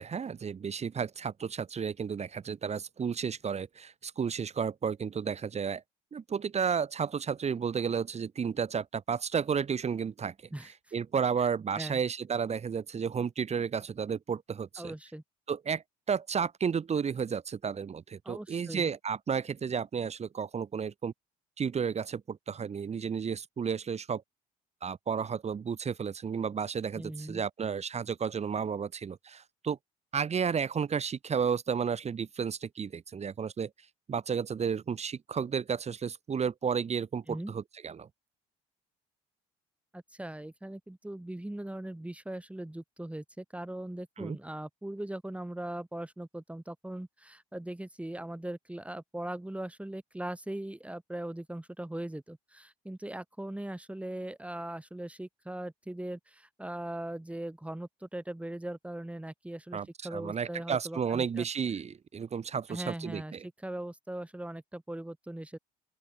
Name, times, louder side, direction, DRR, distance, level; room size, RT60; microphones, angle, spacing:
voice 1, 0.0-5.8 6.1-10.3 10.6-14.9 15.5-21.1 21.6-24.2 24.8-29.8 30.1-33.7 34.1-38.1 44.2-44.4 59.7-63.5, right 6 dB, 40° right, 2.2 m, -32 dB
voice 2, 14.8-15.2 18.2-18.9 27.0-27.4 37.3-37.5 39.9-59.8 60.0-61.5 62.7-65.6, right 1 dB, 5° right, 3.7 m, -40 dB
open air
supercardioid pair, 75°, 18 cm